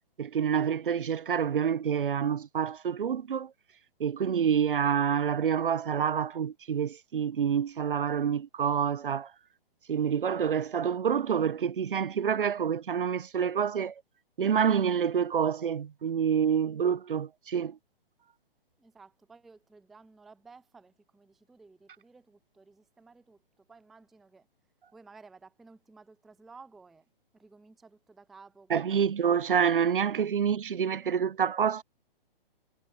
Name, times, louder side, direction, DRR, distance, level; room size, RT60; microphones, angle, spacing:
voice 1, 0.2-3.5 4.0-9.3 9.9-13.9 14.4-17.8 28.7-31.8, right 7 dB, 60° right, 0.6 m, -27 dB
voice 2, 18.8-24.5 24.9-27.1 27.3-29.1, right 4 dB, ahead, 0.4 m, -55 dB
figure-of-eight pair, 125°, 30 cm